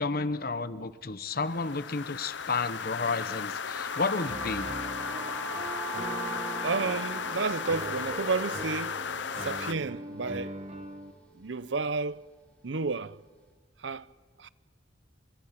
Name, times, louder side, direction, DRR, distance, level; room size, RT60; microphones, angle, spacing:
voice 1, 0.0-4.7, left 4 dB, 55° left, 1.0 m, -31 dB
sound 1, 1.4-9.7, left 6 dB, 75° left, 0.7 m, -35 dB
sound 2, 3.4-11.3, right 5 dB, 10° left, 5.1 m, -43 dB
Piano, 4.3-11.1, right 1 dB, 35° right, 1.4 m, -41 dB
voice 2, 6.6-9.0 9.4-10.6 11.3-12.3 12.6-13.2 13.8-14.1 14.4-14.5, right 4 dB, 85° right, 0.8 m, -31 dB
29.5 x 26.0 x 6.0 m
head